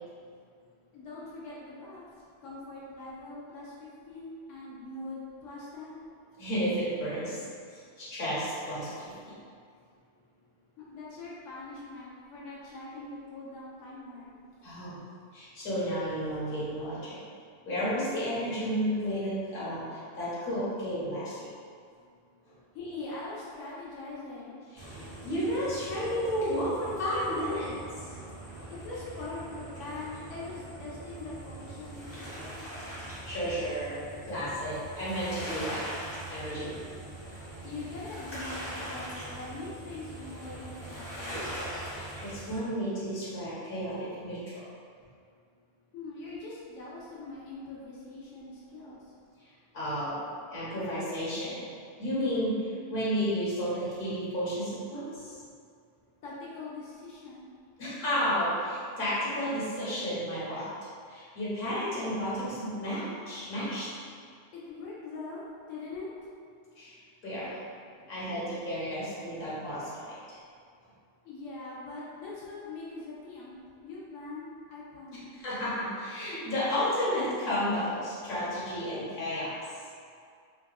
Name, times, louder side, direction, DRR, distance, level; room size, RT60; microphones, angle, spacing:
voice 1, 0.9-2.0 2.4-6.0 10.8-14.4 22.7-24.6 28.7-32.7 37.6-41.5 45.9-49.0 56.2-57.5 64.5-66.1 71.2-75.3, left 3 dB, 90° left, -6 dB, 1.0 m, -42 dB
voice 2, 6.4-7.4 7.7-9.4 14.6-15.0 15.3-17.2 17.6-21.5 24.7-24.9 25.2-28.0 28.6-28.7 33.1-34.0 34.3-35.8 36.3-36.8 41.9-44.4 49.7-51.7 52.0-55.3 57.8-60.7 61.1-64.0 66.8-67.0 67.2-67.6 68.1-70.4 75.3-79.5, equal, 50° left, -10 dB, 1.2 m, -32 dB
sound 1, 24.8-42.6, right 1 dB, 10° left, 1.0 m, -41 dB
3.5 x 2.3 x 2.3 m, 2.3 s
omnidirectional pair, 1.3 m